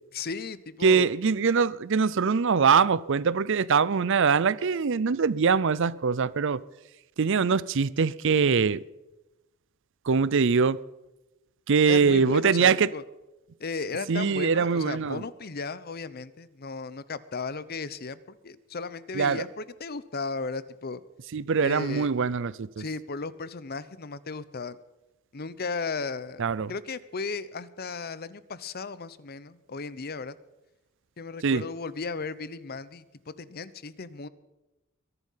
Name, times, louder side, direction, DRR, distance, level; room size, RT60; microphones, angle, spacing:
voice 1, 0.1-1.1 11.8-13.0 13.6-21.0 21.6-22.1 22.8-24.8 25.3-26.4 26.7-30.4 31.2-34.3, left 4 dB, 45° left, 0.8 m, -35 dB
voice 2, 0.8-6.6 7.2-8.8 10.1-10.8 11.7-12.9 14.1-15.2 19.1-19.4 21.3-22.8 26.4-26.7 31.4-31.6, right 5 dB, 60° right, 0.5 m, -23 dB
22.5 x 11.0 x 5.7 m
head